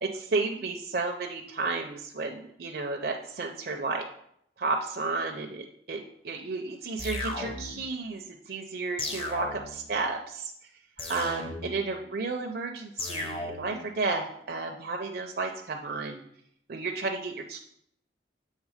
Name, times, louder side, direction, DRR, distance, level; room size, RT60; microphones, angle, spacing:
voice 1, 0.0-4.0 4.6-10.5 11.1-16.2 16.7-17.6, right 3 dB, 55° right, 2 dB, 0.5 m, -32 dB
sound 1, 7.0-7.9 9.0-9.9 11.0-11.9 13.0-13.9, left 2 dB, 30° left, 0.8 m, -36 dB
7.3 x 3.4 x 4.9 m, 0.69 s
head